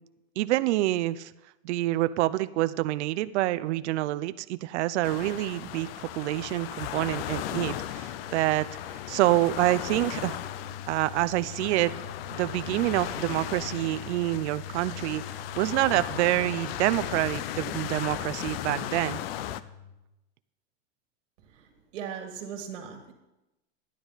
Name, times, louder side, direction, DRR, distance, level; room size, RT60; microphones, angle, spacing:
voice 1, 0.4-1.3 1.6-8.7 9.1-10.4 10.9-11.9 12.3-15.2 15.6-19.2, right 16 dB, 70° right, 14 dB, 0.5 m, -27 dB
sound 1, 5.0-19.6, left 12 dB, 55° left, 0.5 m, -36 dB
sound 2, 8.1-19.9, left 7 dB, 75° left, 2.6 m, -45 dB
voice 2, 21.9-23.1, right 7 dB, 85° right, 3 dB, 1.8 m, -38 dB
12.0 x 9.9 x 4.0 m, 0.96 s
supercardioid pair, 170°, 36 cm